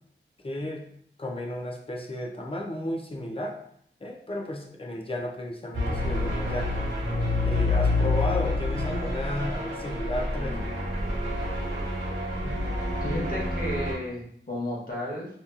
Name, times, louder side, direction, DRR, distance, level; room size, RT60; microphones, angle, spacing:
voice 1, 0.4-0.8 1.2-3.6 4.0-6.8 7.4-10.7, left 1 dB, 25° left, 1 dB, 0.5 m, -33 dB
sound 1, 5.7-13.9, left 2 dB, 70° right, 1.1 m, -28 dB
voice 2, 13.0-15.3, left 1 dB, 45° left, -5 dB, 1.1 m, -33 dB
2.8 x 2.3 x 2.3 m, 0.67 s
wide cardioid pair, 65°, 20 cm